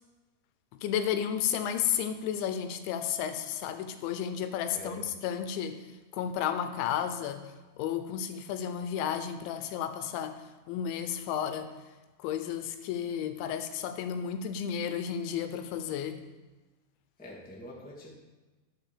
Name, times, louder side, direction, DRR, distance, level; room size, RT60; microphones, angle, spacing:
voice 1, 0.8-5.8 6.1-7.4 7.8-10.4 10.7-11.7 12.2-16.2, left 9 dB, 80° left, 9 dB, 3.1 m, -32 dB
voice 2, 4.7-5.1 17.2-18.1, equal, 5° left, -4 dB, 0.9 m, -45 dB
11.5 x 6.9 x 6.8 m, 1.2 s
omnidirectional pair, 5.3 m